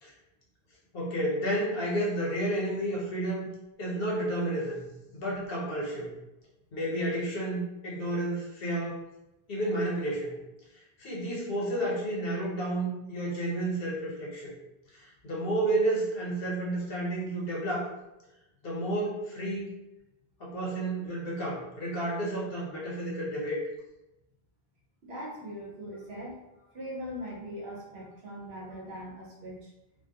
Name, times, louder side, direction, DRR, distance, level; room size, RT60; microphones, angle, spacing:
voice 1, 0.9-3.5 3.8-4.9 5.1-6.1 6.7-9.0 9.5-10.4 11.0-14.5 14.9-17.9 18.6-19.7 20.4-23.6, right 1 dB, 65° left, -4 dB, 1.0 m, -31 dB
voice 2, 25.0-26.4 26.7-29.7, equal, 85° right, -3 dB, 1.0 m, -41 dB
2.4 x 2.1 x 2.7 m, 0.94 s
omnidirectional pair, 1.0 m